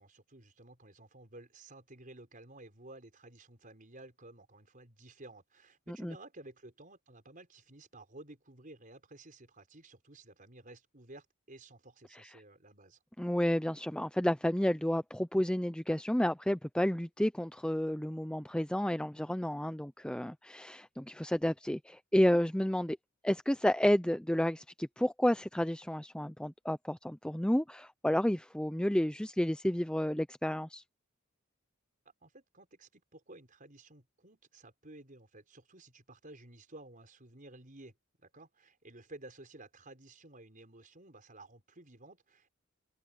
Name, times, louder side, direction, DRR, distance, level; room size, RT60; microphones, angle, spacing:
voice 1, 0.0-13.0 32.2-42.5, right 2 dB, 40° right, 5.2 m, -54 dB
voice 2, 13.2-23.0 23.2-30.8, equal, 5° left, 0.6 m, -31 dB
head